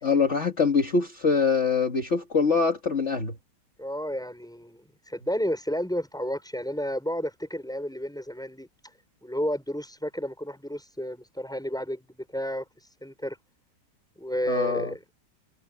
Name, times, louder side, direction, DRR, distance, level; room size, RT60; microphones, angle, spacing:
voice 1, 0.0-3.4 14.5-14.9, left 5 dB, 40° left, 2.1 m, -24 dB
voice 2, 3.8-8.7 9.2-12.7 13.0-13.4 14.2-15.0, equal, ahead, 6.2 m, -31 dB
omnidirectional pair, 1.9 m